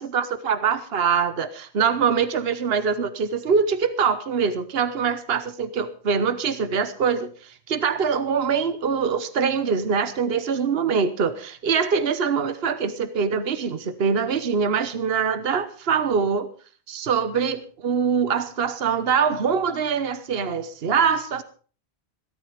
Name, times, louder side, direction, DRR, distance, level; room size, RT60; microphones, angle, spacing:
voice 1, 0.0-16.4 16.9-21.4, right 6 dB, 65° right, 12 dB, 1.3 m, -23 dB
17.0 x 12.5 x 5.1 m, 0.40 s
omnidirectional pair, 1.1 m